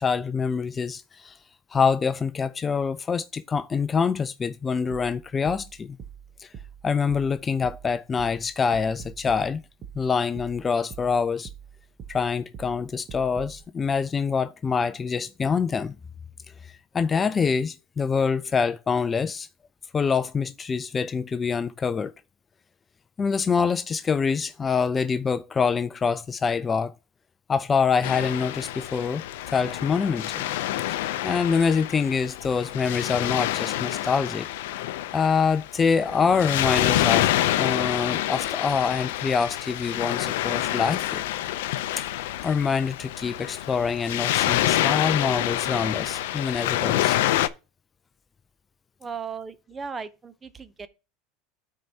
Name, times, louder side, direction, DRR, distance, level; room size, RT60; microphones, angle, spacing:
voice 1, 0.0-1.4 1.7-6.0 6.4-6.5 6.8-9.6 10.0-11.5 12.1-16.0 16.9-19.5 19.9-22.1 23.2-26.9 27.5-29.2 29.5-30.5 30.9-34.5 35.1-37.3 37.6-41.2 42.4-47.2, left 5 dB, 20° left, 0.3 m, -25 dB
sound 1, 4.9-13.6, right 8 dB, 35° right, 1.0 m, -44 dB
Waves surf, 28.0-47.5, left 14 dB, 85° left, 0.4 m, -27 dB
voice 2, 49.0-50.9, right 5 dB, 20° right, 0.6 m, -36 dB
12.5 x 4.5 x 2.8 m
supercardioid pair, 130°, 0 cm